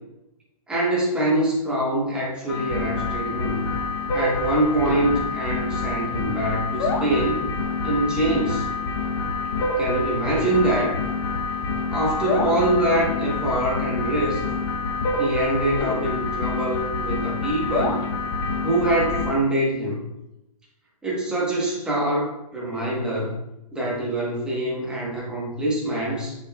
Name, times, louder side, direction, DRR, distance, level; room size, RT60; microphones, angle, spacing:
voice 1, 0.7-3.6 4.1-7.5 7.8-8.7 9.8-11.0 11.9-14.4 15.2-18.0 18.6-20.1 21.0-23.4 23.7-26.4, right 1 dB, 5° right, -6 dB, 1.2 m, -24 dB
sound 1, 2.5-19.3, left 3 dB, 40° left, 1.0 m, -27 dB
7.7 x 6.9 x 2.4 m, 0.91 s
hypercardioid pair, 160°, 20 cm